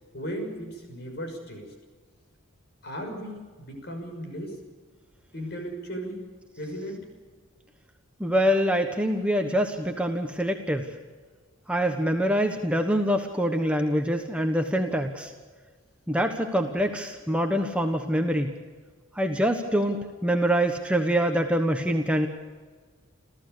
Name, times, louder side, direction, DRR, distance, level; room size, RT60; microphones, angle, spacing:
voice 1, 0.1-1.7 2.8-4.6 5.3-6.3 6.6-7.0 16.9-17.0, equal, 55° left, 4 dB, 6.2 m, -36 dB
voice 2, 8.2-10.9 11.7-15.3 16.1-18.5 19.1-22.3, equal, 5° right, 4 dB, 1.2 m, -25 dB
29.5 x 14.5 x 6.8 m, 1.4 s
head